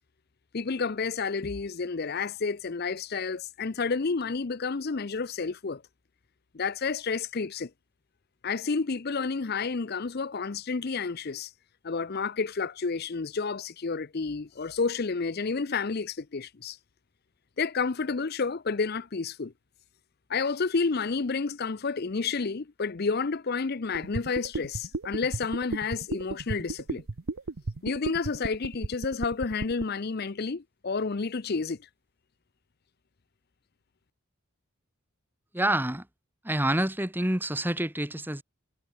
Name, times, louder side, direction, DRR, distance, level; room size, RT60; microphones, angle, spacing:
voice 1, 0.5-5.8 6.5-7.7 8.4-11.5 11.8-16.8 17.6-19.5 20.3-27.0 27.8-31.8, left 4 dB, 45° left, 0.6 m, -30 dB
sound 1, 23.9-29.8, right 3 dB, 70° right, 0.8 m, -33 dB
voice 2, 35.5-36.1 36.4-38.4, right 1 dB, 10° right, 1.9 m, -27 dB
head